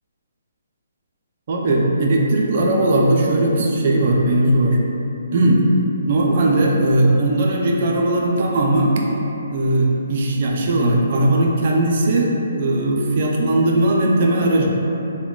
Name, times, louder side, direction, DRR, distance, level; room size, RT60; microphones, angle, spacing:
voice 1, 1.5-4.8 5.3-5.6 6.1-9.0 9.5-14.7, right 1 dB, 50° right, -1 dB, 0.4 m, -18 dB
3.7 x 2.1 x 2.2 m, 2.9 s
hypercardioid pair, 150°, 0 cm